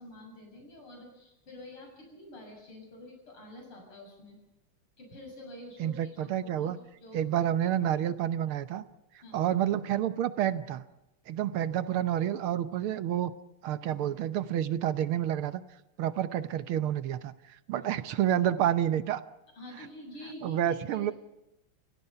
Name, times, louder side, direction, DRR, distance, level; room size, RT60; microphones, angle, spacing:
voice 1, 0.0-4.4 5.0-7.2 9.2-9.5 17.7-17.9 19.5-21.1, left 1 dB, 75° left, 1 dB, 7.8 m, -48 dB
voice 2, 5.8-6.8 7.1-8.8 9.3-10.8 11.3-13.3 13.6-15.6 16.0-19.2 20.4-21.1, right 11 dB, 75° right, 13 dB, 1.8 m, -29 dB
30.0 x 17.0 x 5.7 m, 0.93 s
omnidirectional pair, 2.4 m